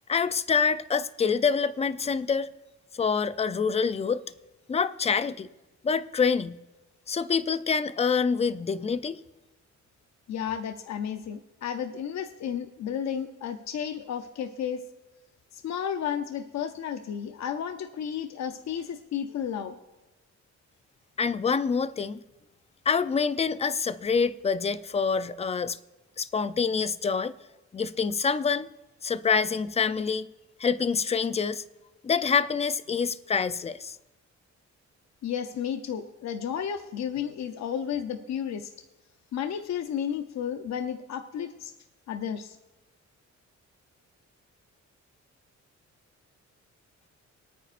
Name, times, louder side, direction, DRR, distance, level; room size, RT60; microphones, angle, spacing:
voice 1, 0.1-2.5 2.9-4.2 4.7-5.5 5.8-6.6 7.1-9.2 21.2-22.2 22.9-25.8 26.2-27.3 27.7-28.7 29.0-30.3 30.6-31.6 32.0-34.0, left 5 dB, 20° left, 0.4 m, -26 dB
voice 2, 10.3-14.8 15.5-19.8 35.2-38.7 39.3-41.7 42.1-42.6, left 8 dB, 70° left, 0.7 m, -32 dB
24.0 x 9.1 x 2.5 m
cardioid pair, 120°, 29 cm